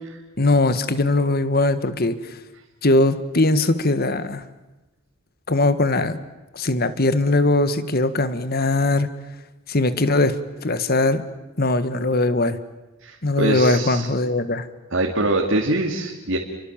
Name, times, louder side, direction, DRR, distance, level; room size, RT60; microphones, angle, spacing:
voice 1, 0.4-2.2 2.8-4.4 5.5-6.2 6.5-9.1 9.7-11.2 11.6-12.6 13.2-14.6, left 2 dB, 45° left, 12 dB, 1.6 m, -20 dB
voice 2, 13.0-14.1 14.9-16.4, right 2 dB, 65° right, 0 dB, 2.6 m, -23 dB
30.0 x 24.0 x 7.4 m, 1.1 s
head